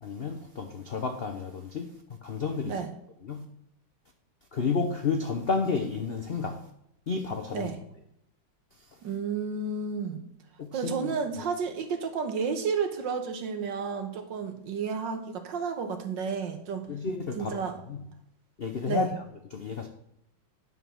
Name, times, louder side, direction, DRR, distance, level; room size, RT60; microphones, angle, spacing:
voice 1, 0.0-1.9 2.2-2.8 3.2-3.4 4.5-6.7 7.1-7.7 10.6-11.1 16.9-17.6 17.9-18.0 18.6-19.1 19.5-19.9, left 4 dB, 65° left, 0.5 m, -31 dB
voice 2, 9.0-10.2 10.7-16.9 17.3-17.8 18.8-19.1, right 5 dB, 70° right, 1.8 m, -31 dB
9.5 x 5.5 x 6.2 m
omnidirectional pair, 2.1 m